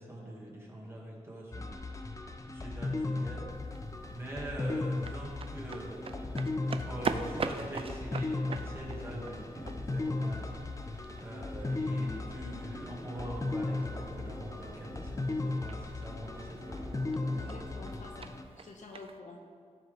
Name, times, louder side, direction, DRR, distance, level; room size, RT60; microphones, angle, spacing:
voice 1, 0.0-3.4 4.1-6.2 6.8-16.9, right 1 dB, 20° right, -4 dB, 2.4 m, -44 dB
sound 1, 1.5-18.4, left 2 dB, 25° left, 0.7 m, -36 dB
sound 2, 3.5-19.2, right 5 dB, 50° right, 0.5 m, -44 dB
sound 3, 5.9-18.0, right 2 dB, 85° right, 1.2 m, -52 dB
voice 2, 17.2-19.4, left 3 dB, 80° left, 1 dB, 1.3 m, -49 dB
16.5 x 6.3 x 3.6 m, 2.2 s
wide cardioid pair, 125°, 12 cm